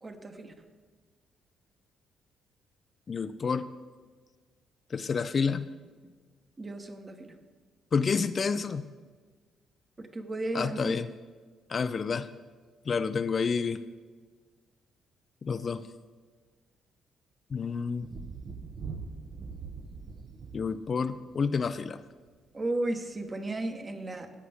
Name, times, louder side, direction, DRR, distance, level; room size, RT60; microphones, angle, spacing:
voice 1, 0.0-0.5 6.0-6.1 6.6-7.4 10.0-11.0 22.5-24.3, right 2 dB, 30° right, 6 dB, 1.2 m, -34 dB
voice 2, 3.1-3.7 4.9-5.6 7.9-8.9 10.5-11.1 11.7-12.3 12.9-13.8 15.4-15.8 17.5-18.1 20.5-22.0, left 5 dB, 45° left, 12 dB, 0.4 m, -29 dB
Thunder, 18.0-21.9 23.2-23.3, right 4 dB, 55° right, 1.0 m, -42 dB
14.5 x 8.3 x 3.6 m, 1.5 s
cardioid pair, 90°, 0 cm